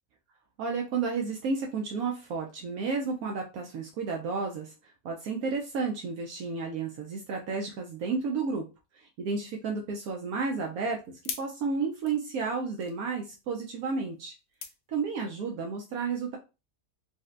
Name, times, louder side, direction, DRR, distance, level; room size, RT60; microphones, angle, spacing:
voice 1, 0.6-4.7 5.0-8.7 9.0-11.0 11.4-14.3 14.9-16.4, right 4 dB, 75° right, 0 dB, 1.1 m, -32 dB
sound 1, 9.9-15.5, left 7 dB, 85° left, 1.2 m, -46 dB
4.1 x 2.1 x 2.4 m, 0.28 s
omnidirectional pair, 1.6 m